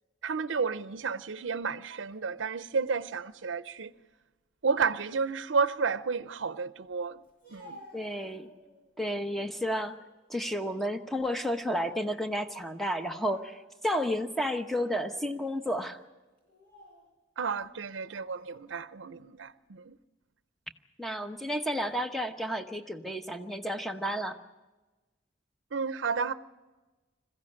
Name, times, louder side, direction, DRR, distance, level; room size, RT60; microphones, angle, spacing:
voice 1, 0.2-3.9 4.6-7.2 7.5-7.8 17.4-20.0 25.7-26.3, right 5 dB, 75° right, 0.6 m, -31 dB
Speech, 7.2-8.9 9.4-10.0 10.4-11.6 11.9-12.1 12.9-13.9 14.4-14.6 15.3-15.6 16.4-17.1 17.9-18.6, equal, 55° left, 7.8 m, -55 dB
voice 2, 7.9-8.5 9.0-10.0 10.3-16.0 21.0-24.4, equal, ahead, 1.0 m, -32 dB
21.5 x 15.5 x 9.8 m
head